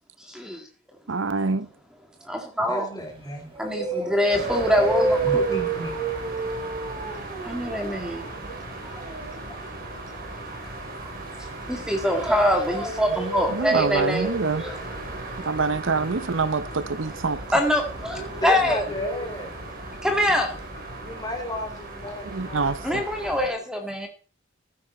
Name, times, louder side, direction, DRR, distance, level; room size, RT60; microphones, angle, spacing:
voice 1, 0.3-0.6 2.2-2.9 3.6-5.4 7.4-8.3 8.8-9.0 9.5-9.6 11.7-14.3 14.6-14.7 17.5-18.8 20.0-20.6 22.8-24.1, equal, 5° right, 2.0 m, -24 dB
voice 2, 1.1-1.7 13.5-14.6 15.5-17.4 22.2-23.0, right 4 dB, 65° right, 0.7 m, -26 dB
voice 3, 2.6-3.4 5.2-5.9 18.4-19.6 21.0-23.1, left 1 dB, 20° left, 3.8 m, -33 dB
sound 1, 3.1-3.2 3.5-9.4 11.6-19.6 19.9-20.0 20.3-20.4, right 3 dB, 30° right, 3.6 m, -31 dB
sound 2, 4.3-23.5, right 2 dB, 45° right, 4.0 m, -37 dB
14.5 x 8.9 x 4.3 m
head